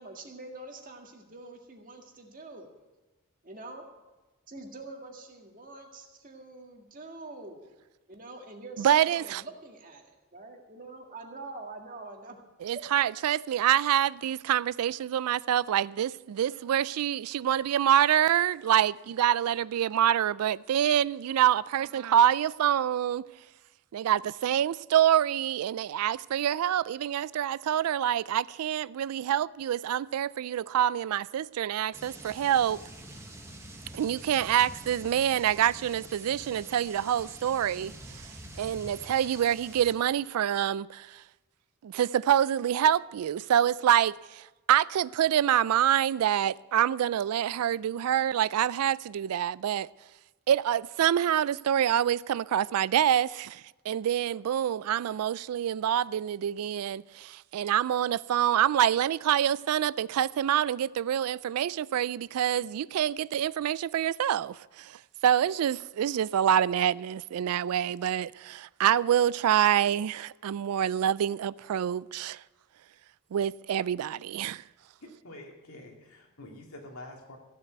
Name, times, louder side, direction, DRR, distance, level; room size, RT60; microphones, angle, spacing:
voice 1, 0.0-2.7 3.4-3.9 4.5-7.7 8.1-12.4 12.7-12.8, right 2 dB, 40° right, 1.8 m, -45 dB
voice 2, 8.8-9.4 12.6-23.2 23.9-32.8 33.9-38.3 38.6-41.2 41.8-49.9 50.5-72.4 73.3-74.6, right 10 dB, 90° right, 0.3 m, -26 dB
sound 1, 31.9-39.9, right 1 dB, 10° right, 1.2 m, -46 dB
voice 3, 75.0-77.4, left 1 dB, 80° left, 2.4 m, -47 dB
15.5 x 7.5 x 8.0 m
head